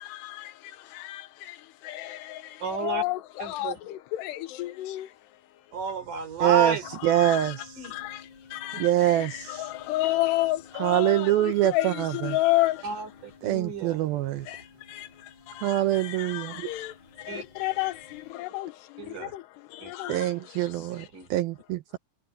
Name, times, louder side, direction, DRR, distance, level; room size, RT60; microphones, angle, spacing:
voice 1, 0.0-5.1 7.0-7.6 7.9-12.8 14.5-21.1, left 17 dB, 85° left, 3.0 m, -32 dB
voice 2, 2.6-3.0 3.4-3.8 5.7-6.9 7.8-8.0 12.8-14.0 17.3-17.4 19.0-19.3 19.8-19.9 21.1-21.3, right 5 dB, 50° right, 5.3 m, -31 dB
voice 3, 6.4-6.8 7.0-7.8 8.8-9.7 10.8-12.4 13.4-14.5 15.6-16.7 20.1-22.0, right 13 dB, 75° right, 2.4 m, -25 dB
sound 1, 6.8-18.3, left 4 dB, 35° right, 7.8 m, -53 dB
omnidirectional pair, 4.8 m